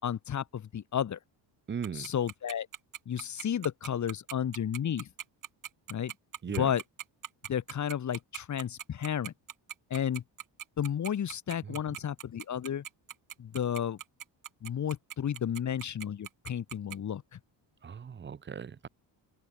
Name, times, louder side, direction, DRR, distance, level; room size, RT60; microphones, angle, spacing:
voice 1, 0.0-1.2 1.9-2.7 3.1-5.1 5.9-6.1 6.6-6.8 7.5-9.3 9.9-10.2 10.8-12.8 13.4-14.0 14.6-17.4, left 9 dB, 40° left, 4.0 m, -32 dB
voice 2, 1.7-2.1 6.4-6.7 11.6-12.0 17.8-18.9, right 7 dB, 25° right, 1.2 m, -38 dB
Tick-tock, 1.8-17.0, right 10 dB, 45° right, 5.0 m, -41 dB
open air
cardioid pair, 160°, 43 cm